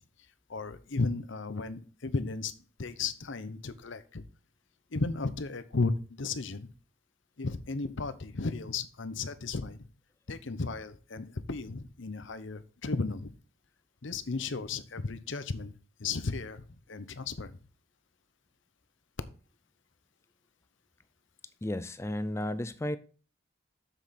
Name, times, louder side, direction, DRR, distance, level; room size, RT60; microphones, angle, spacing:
voice 1, 0.5-2.5 2.8-4.2 4.9-5.9 6.2-6.7 7.4-9.8 10.3-13.3 14.0-15.7 16.0-16.6 16.9-17.5, left 3 dB, 65° left, 0.8 m, -34 dB
voice 2, 21.6-23.0, left 1 dB, 15° left, 0.4 m, -33 dB
7.3 x 6.8 x 4.2 m
head